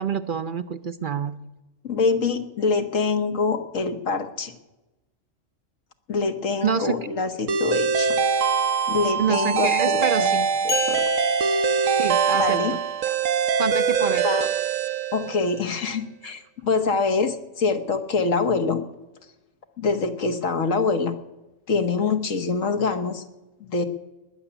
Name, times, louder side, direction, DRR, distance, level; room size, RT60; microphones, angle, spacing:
voice 1, 0.0-1.4 6.6-6.9 9.2-10.4 12.0-12.8 13.1-13.2 13.6-14.3 16.2-16.3, right 7 dB, 50° right, 11 dB, 0.7 m, -27 dB
voice 2, 1.8-4.5 6.1-8.2 8.9-11.0 12.4-12.7 14.0-14.5 15.1-18.8 19.8-21.1 21.7-23.2 23.6-23.8, left 4 dB, 85° left, 7 dB, 1.7 m, -25 dB
sound 1, 7.5-15.6, right 6 dB, 80° right, 1.2 m, -23 dB
sound 2, 10.7-12.5, left 5 dB, 40° left, 0.5 m, -32 dB
20.0 x 7.1 x 9.9 m, 1.0 s
omnidirectional pair, 1.3 m